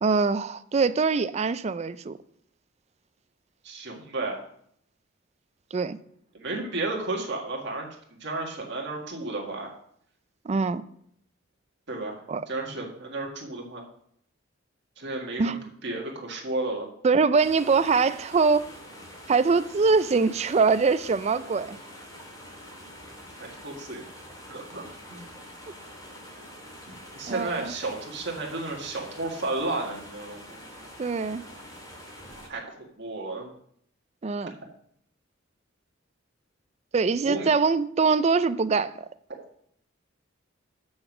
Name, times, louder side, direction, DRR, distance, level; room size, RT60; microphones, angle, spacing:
voice 1, 0.0-2.2 5.7-6.0 10.4-10.8 12.3-12.5 15.4-15.7 17.0-18.7 19.3-21.8 27.3-27.7 31.0-31.4 34.2-34.6 36.9-39.1, right 4 dB, 35° right, 0.4 m, -23 dB
voice 2, 3.6-4.4 6.3-7.9 8.2-9.7 11.9-13.8 15.0-16.9 23.4-24.0 24.5-24.8 25.1-25.2 27.1-30.6 32.5-33.5 37.2-37.5, right 2 dB, 60° right, 1.8 m, -33 dB
sound 1, 17.4-32.5, equal, 20° left, 2.2 m, -45 dB
7.8 x 6.3 x 6.0 m
head